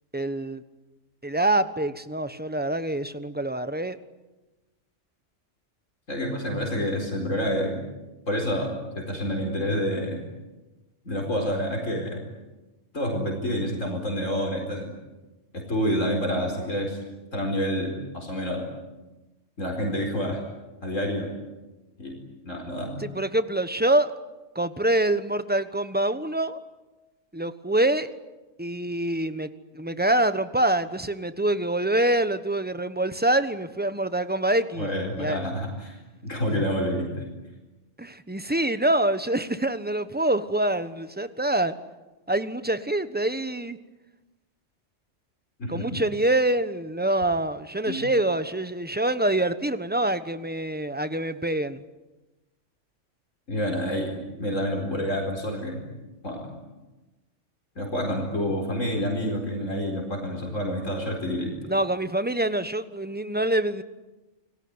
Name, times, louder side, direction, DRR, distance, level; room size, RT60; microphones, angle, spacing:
voice 1, 0.1-0.6 1.2-4.0 23.0-24.1 24.5-26.6 27.3-28.1 28.6-29.5 29.7-34.9 35.2-35.4 38.0-41.7 42.3-43.8 45.7-51.8 61.7-63.8, right 1 dB, 10° right, 12 dB, 1.0 m, -25 dB
voice 2, 6.1-7.9 8.3-10.3 11.0-12.2 12.9-14.9 15.5-17.0 17.3-18.7 19.6-20.4 20.8-21.4 22.0-23.0 34.8-36.0 36.2-37.3 45.6-46.0 47.9-48.0 53.5-55.9 56.2-56.5 57.8-61.6, equal, 85° left, 1 dB, 4.9 m, -28 dB
29.5 x 19.5 x 9.7 m, 1.1 s
omnidirectional pair, 1.3 m